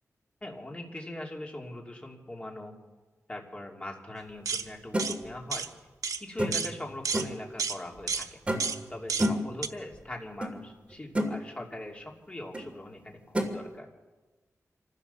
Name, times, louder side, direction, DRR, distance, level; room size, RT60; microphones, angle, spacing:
voice 1, 0.4-2.7 3.3-5.7 6.2-8.6 8.9-13.9, left 1 dB, 20° left, 0 dB, 2.9 m, -41 dB
sound 1, 4.5-4.7 5.0-5.2 5.5-5.7 6.0-6.2 6.5-6.7 7.1-7.3 7.6-7.8 8.1-8.3 8.6-8.8 9.1-9.3 9.6-9.7, right 5 dB, 80° right, 1.0 m, -31 dB
sound 2, 4.9-5.1 6.4-6.7 7.1-7.4 8.5-8.8 9.2-9.5 10.4-10.5 10.9-11.3 12.5-12.7 13.3-13.5, equal, 20° right, 2.4 m, -29 dB
26.0 x 15.5 x 7.0 m, 1.2 s
wide cardioid pair, 145°, 6 cm